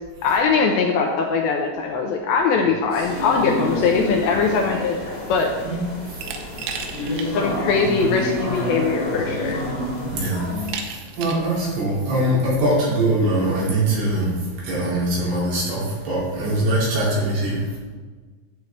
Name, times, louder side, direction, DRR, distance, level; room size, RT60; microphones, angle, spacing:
voice 1, 0.2-5.0 5.3-5.5 7.3-9.6, left 5 dB, 85° left, 1 dB, 2.6 m, -21 dB
sound 1, 2.9-10.7, left 2 dB, 45° left, 4.5 m, -28 dB
Glass, 6.2-7.3 7.7-7.8 8.9-9.0 9.5-9.9 10.7-11.5, right 6 dB, 85° right, 3.3 m, -33 dB
voice 2, 10.1-10.5 11.2-14.3 14.6-17.6, right 1 dB, 60° right, -6 dB, 4.4 m, -22 dB
12.0 x 7.8 x 3.4 m, 1.4 s
omnidirectional pair, 5.7 m